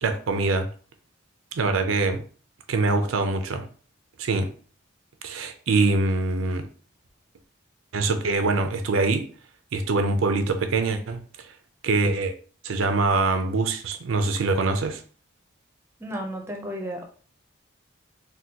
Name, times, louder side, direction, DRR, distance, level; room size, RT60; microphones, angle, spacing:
voice 1, 0.0-0.7 1.6-2.2 2.7-3.7 4.2-4.5 5.2-6.7 7.9-9.3 9.7-11.2 11.8-12.3 12.6-15.0, right 3 dB, 85° right, 0.5 m, -24 dB
voice 2, 16.0-17.1, equal, 10° right, 0.5 m, -33 dB
3.6 x 2.2 x 2.7 m
head